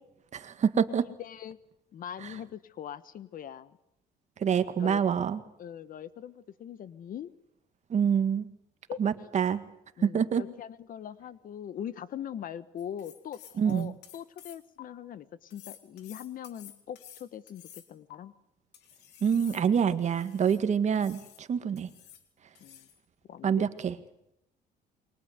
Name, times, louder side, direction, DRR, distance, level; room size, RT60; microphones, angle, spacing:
voice 1, 0.3-1.1 2.2-2.3 4.4-5.4 7.9-8.5 9.0-9.6 10.0-10.4 13.6-13.9 19.2-21.9 23.4-24.0, right 7 dB, 45° right, 10 dB, 1.9 m, -26 dB
voice 2, 1.0-1.6 1.9-3.8 4.8-5.0 5.6-7.3 8.9-9.0 10.0-18.3 22.6-22.9 23.3-23.7, left 9 dB, 55° left, 15 dB, 1.3 m, -41 dB
sound 1, 12.8-14.8 15.5-18.2 18.7-20.6 21.0-21.4 21.8-22.3 22.5-23.0, left 10 dB, 85° left, 3.1 m, -52 dB
28.5 x 23.0 x 8.1 m, 0.81 s
cardioid pair, 110°, 17 cm